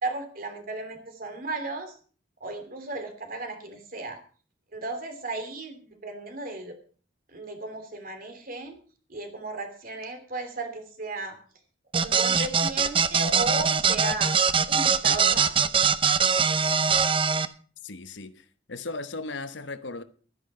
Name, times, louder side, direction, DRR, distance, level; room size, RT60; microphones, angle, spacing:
voice 1, 0.0-1.9 2.4-4.2 4.7-6.7 7.3-8.8 9.1-11.4 11.9-14.3 14.7-15.5, right 2 dB, 50° right, 3.0 m, -34 dB
sound 1, 11.9-17.5, right 6 dB, 30° right, 0.7 m, -22 dB
voice 2, 17.8-20.0, left 3 dB, 85° left, 1.1 m, -37 dB
12.5 x 10.5 x 5.6 m
head